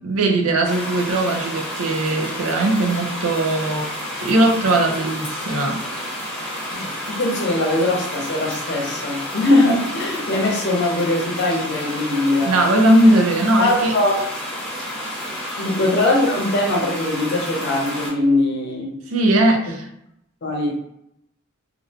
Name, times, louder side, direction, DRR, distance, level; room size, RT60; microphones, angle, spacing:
voice 1, 0.0-3.9 4.2-5.8 12.5-13.9 15.6-15.7 19.1-19.9, right 1 dB, 90° right, 3 dB, 0.5 m, -19 dB
sound 1, 0.7-18.1, equal, 5° left, 0.7 m, -30 dB
voice 2, 6.7-12.6 13.0-13.1 13.6-14.2 15.6-19.0 20.4-20.7, left 2 dB, 55° left, -1 dB, 0.7 m, -21 dB
2.5 x 2.1 x 2.7 m, 0.78 s
head